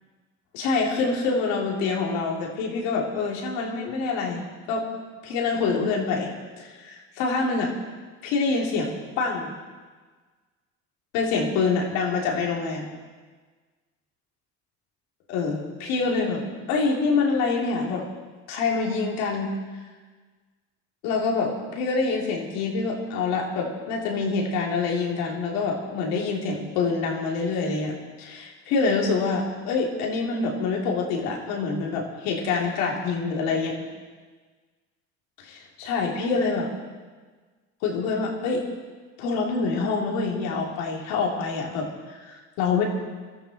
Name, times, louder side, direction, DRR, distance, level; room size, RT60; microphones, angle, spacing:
voice 1, 0.5-4.9 5.2-7.7 8.2-9.5 11.1-12.9 15.3-16.4 16.7-18.0 18.5-19.5 21.0-33.7 35.4-36.7 37.8-38.6 39.2-42.8, left 4 dB, 85° left, -1 dB, 3.0 m, -26 dB
21.0 x 13.5 x 4.2 m, 1.4 s
supercardioid pair, 70°, 34 cm